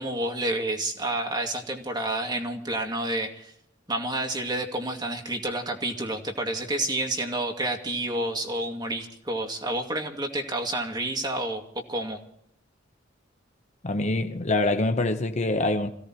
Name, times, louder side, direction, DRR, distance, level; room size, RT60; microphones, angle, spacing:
voice 1, 0.0-3.5 3.9-11.6 11.9-12.2, right 1 dB, 20° right, 2.3 m, -29 dB
voice 2, 13.8-15.9, left 2 dB, 35° left, 1.0 m, -25 dB
26.0 x 16.5 x 3.0 m
head